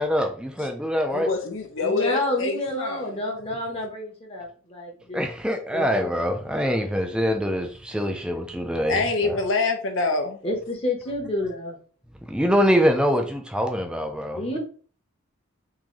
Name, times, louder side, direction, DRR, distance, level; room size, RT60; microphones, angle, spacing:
voice 1, 0.0-1.3 5.1-9.4 12.3-14.4, equal, 5° right, 0.4 m, -24 dB
voice 2, 1.1-3.3 8.9-10.4, left 3 dB, 65° left, 0.7 m, -26 dB
voice 3, 1.8-5.2 5.7-6.1 10.4-11.8 14.4-14.6, left 1 dB, 30° left, 0.9 m, -29 dB
3.7 x 2.6 x 3.0 m
head